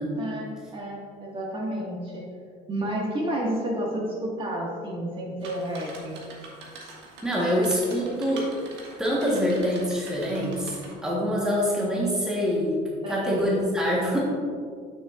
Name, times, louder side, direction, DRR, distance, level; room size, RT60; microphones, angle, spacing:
voice 1, 0.2-2.2 2.7-6.2 13.0-13.6, right 1 dB, 30° right, -3 dB, 1.7 m, -31 dB
sound 1, 5.4-10.9, right 3 dB, 80° right, 1.5 m, -44 dB
voice 2, 7.2-8.5 9.0-12.8 13.1-14.2, equal, 5° right, -5 dB, 1.3 m, -25 dB
8.7 x 6.6 x 2.5 m, 2.1 s
cardioid pair, 140°, 18 cm